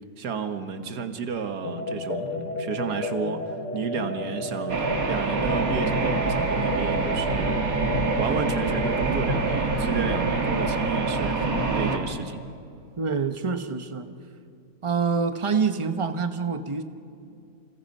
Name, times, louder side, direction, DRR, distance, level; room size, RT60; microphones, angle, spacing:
voice 1, 0.2-4.8 5.1-7.6 8.2-12.4, right 6 dB, 85° right, 8 dB, 1.9 m, -32 dB
sound 1, 1.6-9.0, left 2 dB, 50° left, 2.0 m, -32 dB
sound 2, 4.7-12.0, right 3 dB, 60° right, 2.2 m, -25 dB
voice 2, 13.0-14.1 14.8-16.8, right 5 dB, 25° right, 8 dB, 0.9 m, -26 dB
30.0 x 26.5 x 5.5 m, 2.5 s
omnidirectional pair, 1.7 m